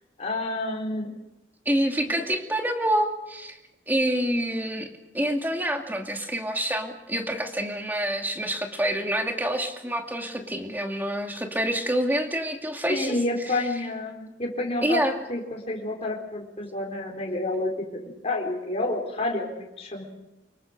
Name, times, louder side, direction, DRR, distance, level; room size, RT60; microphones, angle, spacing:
voice 1, 0.2-1.1 12.9-15.0 15.3-20.0, left 2 dB, 35° left, -1 dB, 4.1 m, -29 dB
voice 2, 1.7-3.6 3.9-4.9 5.1-13.2 13.4-13.6 14.8-15.1, right 1 dB, 10° right, 3 dB, 2.5 m, -27 dB
25.0 x 22.0 x 6.6 m, 0.96 s
head